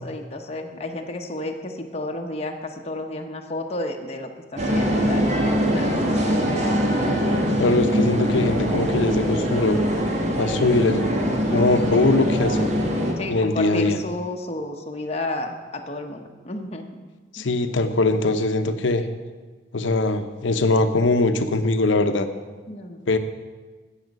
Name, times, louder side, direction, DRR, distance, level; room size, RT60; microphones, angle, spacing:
voice 1, 0.0-5.2 5.7-6.3 6.6-6.8 13.2-16.9 17.4-17.5 22.7-23.0, left 2 dB, 35° left, 3 dB, 0.9 m, -31 dB
sound 1, 4.6-13.1, equal, 35° right, 1.5 m, -22 dB
voice 2, 7.6-9.8 10.4-12.7 13.3-14.0 17.3-19.0 19.7-22.3 23.1-23.2, left 2 dB, 80° left, 9 dB, 0.8 m, -21 dB
12.5 x 8.3 x 5.3 m, 1.4 s
head